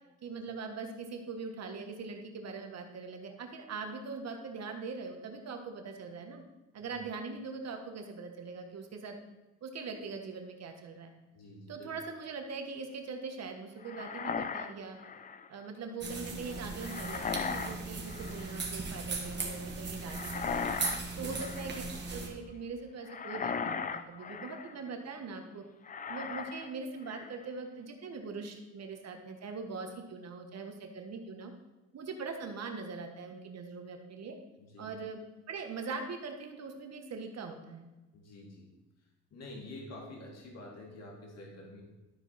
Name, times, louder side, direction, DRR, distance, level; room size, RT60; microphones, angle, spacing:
voice 1, 0.2-6.4 6.7-9.2 9.6-11.1 11.7-15.0 15.5-20.7 21.1-21.7 22.1-25.6 26.1-31.5 31.9-34.3 34.8-35.2 35.5-37.9, right 4 dB, 60° right, 4 dB, 1.4 m, -42 dB
voice 2, 11.3-11.9 20.9-21.3 34.6-34.9 38.1-38.7 39.3-41.8, left 1 dB, 55° left, -2 dB, 2.2 m, -48 dB
sound 1, 13.8-15.5 16.8-17.8 18.0-18.6 20.1-21.0 21.3-21.9 23.1-24.8 25.9-26.7 27.0-27.5, left 6 dB, 30° left, 0.5 m, -38 dB
sound 2, 16.0-22.3, right 3 dB, 35° right, 1.7 m, -38 dB
13.0 x 4.5 x 4.1 m, 1.1 s
cardioid pair, 90°, 30 cm